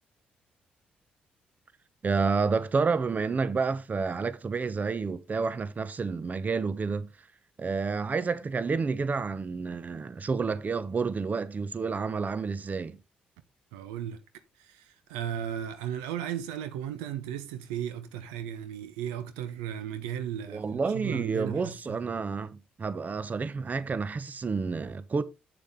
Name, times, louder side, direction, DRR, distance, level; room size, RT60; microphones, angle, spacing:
voice 1, 2.0-7.1 7.6-13.0 20.5-25.2, right 4 dB, 40° right, 0.8 m, -29 dB
voice 2, 13.7-14.2 14.6-22.0, right 10 dB, 85° right, 0.6 m, -35 dB
7.0 x 6.9 x 3.6 m
hypercardioid pair, 45°, 4 cm